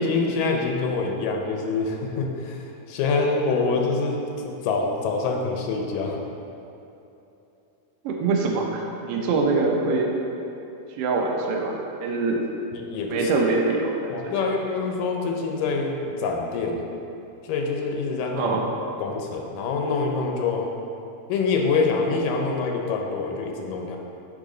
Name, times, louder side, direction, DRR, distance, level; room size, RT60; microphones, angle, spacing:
voice 1, 0.0-6.2 12.7-13.3 14.1-16.8 17.4-18.6 19.0-20.7 21.3-24.0, left 4 dB, 85° left, 2 dB, 2.4 m, -25 dB
voice 2, 8.0-10.1 11.0-12.4 13.1-14.3 18.4-18.7, right 3 dB, 85° right, 0 dB, 2.4 m, -24 dB
10.0 x 4.0 x 3.8 m, 2.9 s
omnidirectional pair, 3.8 m